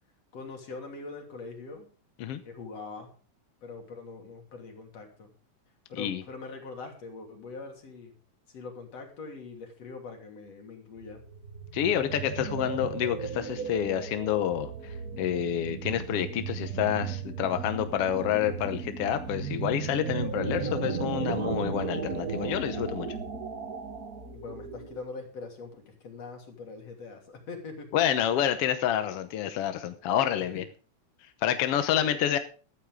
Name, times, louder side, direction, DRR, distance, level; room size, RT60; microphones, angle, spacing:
voice 1, 0.3-1.9 2.4-3.1 3.6-5.3 5.9-8.1 8.5-11.2 24.3-27.9 30.1-30.2 31.9-32.2, left 4 dB, 50° left, 2 dB, 4.0 m, -42 dB
sound 1, 11.0-25.1, right 6 dB, 75° right, 0.8 m, -35 dB
voice 2, 11.7-23.1 27.9-30.6 31.4-32.4, left 10 dB, 70° left, 9 dB, 1.5 m, -28 dB
14.5 x 13.5 x 3.7 m, 0.38 s
omnidirectional pair, 3.8 m